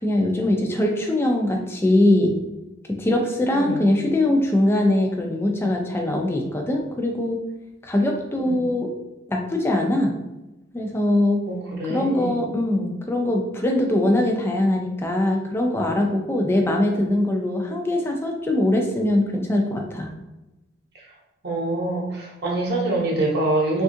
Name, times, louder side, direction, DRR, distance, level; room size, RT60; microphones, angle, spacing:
voice 1, 0.0-2.3 3.0-7.4 7.8-8.9 9.3-10.1 10.7-11.4 11.9-20.1, left 1 dB, 10° left, 2 dB, 0.3 m, -22 dB
voice 2, 3.5-3.8 8.3-8.7 11.4-12.4 20.9-21.1 21.4-23.8, right 2 dB, 55° right, -2 dB, 0.8 m, -25 dB
3.5 x 2.4 x 2.5 m, 0.99 s
head